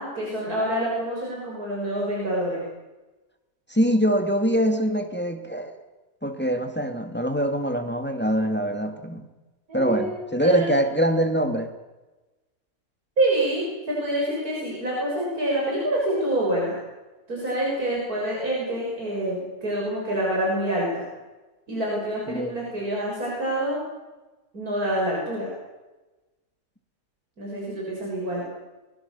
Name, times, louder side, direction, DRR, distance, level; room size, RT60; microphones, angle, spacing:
voice 1, 0.0-2.6 9.7-10.7 13.2-16.7 17.3-21.0 21.7-23.8 24.5-25.5 27.4-28.4, right 1 dB, 85° right, -4 dB, 7.3 m, -27 dB
voice 2, 3.7-5.8 6.2-9.3 9.7-11.7 22.3-22.5, equal, 5° left, 6 dB, 2.3 m, -24 dB
23.5 x 23.0 x 7.0 m, 1.1 s
omnidirectional pair, 1.5 m